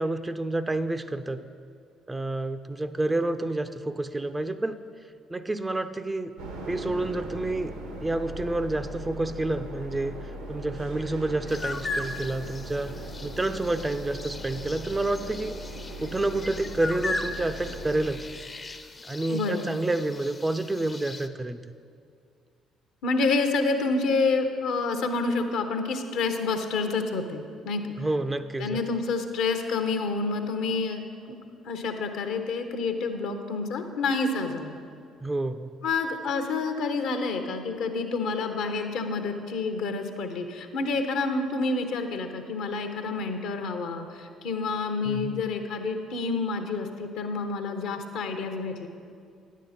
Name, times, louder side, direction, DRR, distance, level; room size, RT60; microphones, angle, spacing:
voice 1, 0.0-1.4 2.1-4.8 5.3-6.3 6.7-7.7 8.0-15.6 16.0-18.3 19.1-21.6 28.0-28.8 35.2-35.7 45.1-45.4, right 2 dB, 20° right, 10 dB, 0.4 m, -29 dB
sound 1, 6.4-18.1, right 1 dB, 80° right, 1.1 m, -39 dB
sound 2, 11.5-21.3, left 3 dB, 30° left, 0.5 m, -38 dB
voice 2, 19.3-19.7 23.0-27.8 28.6-31.4 31.6-34.8 35.8-48.9, left 3 dB, 70° left, 6 dB, 0.7 m, -28 dB
9.9 x 8.3 x 4.2 m, 2.3 s
hypercardioid pair, 50°, 0 cm